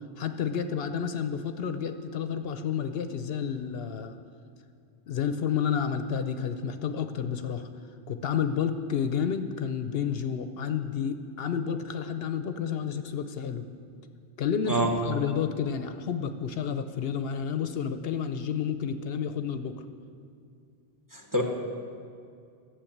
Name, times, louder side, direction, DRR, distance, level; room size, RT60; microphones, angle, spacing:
voice 1, 0.2-4.2 5.1-7.7 8.1-13.7 14.4-19.8, left 7 dB, 70° left, 9 dB, 0.8 m, -30 dB
voice 2, 21.1-21.4, right 1 dB, 20° right, 2 dB, 1.2 m, -26 dB
12.0 x 7.2 x 8.5 m, 2.4 s
omnidirectional pair, 1.1 m